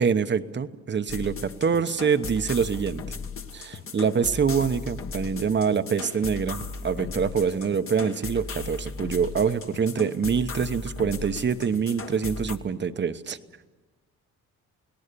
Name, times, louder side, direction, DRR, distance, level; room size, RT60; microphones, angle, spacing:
voice 1, 0.0-3.0 3.5-13.4, right 6 dB, 35° right, 11 dB, 1.0 m, -25 dB
sound 1, 1.1-12.6, left 4 dB, 45° left, 1.5 m, -37 dB
29.0 x 18.5 x 6.9 m, 1.3 s
cardioid pair, 90°, 30 cm